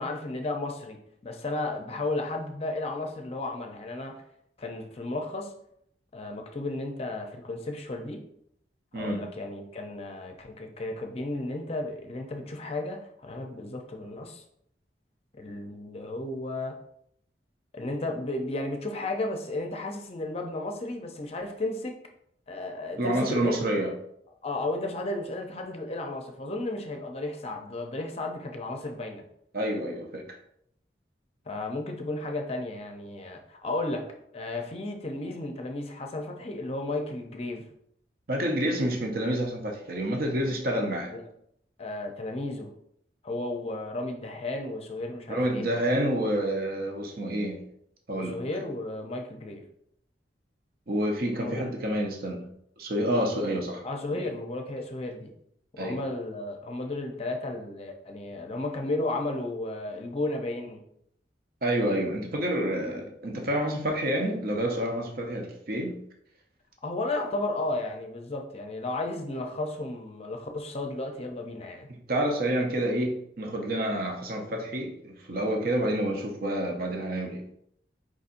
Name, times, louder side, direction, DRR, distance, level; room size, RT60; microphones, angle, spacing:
voice 1, 0.0-4.2 4.6-5.5 6.1-8.2 8.9-14.4 15.4-16.8 17.7-21.9 22.5-23.6 24.4-29.2 31.5-34.1 34.3-37.6 41.1-41.2 41.8-42.7 43.2-45.7 48.1-49.6 51.4-51.7 53.8-55.3 55.7-60.8 66.8-71.9, left 2 dB, 35° left, 0.6 m, -33 dB
voice 2, 23.0-23.9 29.5-30.2 38.3-41.1 45.3-47.6 48.1-48.4 50.9-52.5 52.8-53.9 54.1-54.3 55.8-56.0 61.6-66.0 72.1-77.4, right 1 dB, 55° right, 0.7 m, -28 dB
4.9 x 4.1 x 2.5 m
head